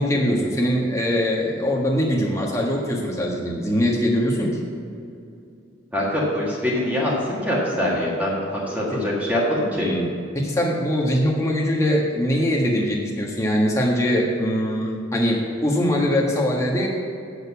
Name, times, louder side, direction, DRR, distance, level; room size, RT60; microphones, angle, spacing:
voice 1, 0.0-4.6 8.9-9.0 9.7-10.1 10.3-16.9, equal, 15° left, -2 dB, 1.5 m, -22 dB
voice 2, 5.9-9.9, left 1 dB, 10° right, -7 dB, 1.6 m, -23 dB
9.1 x 6.6 x 7.0 m, 2.5 s
head